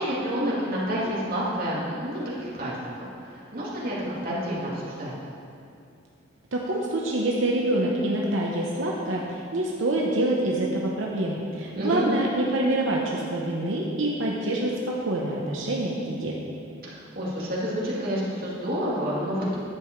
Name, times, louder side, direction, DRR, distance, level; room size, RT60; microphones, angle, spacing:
voice 1, 0.0-3.9 4.2-5.1 11.7-12.1 16.9-19.5, equal, 50° right, -7 dB, 2.5 m, -29 dB
voice 2, 6.5-16.4, right 1 dB, 90° right, -2 dB, 1.0 m, -26 dB
10.5 x 7.8 x 4.6 m, 2.5 s
head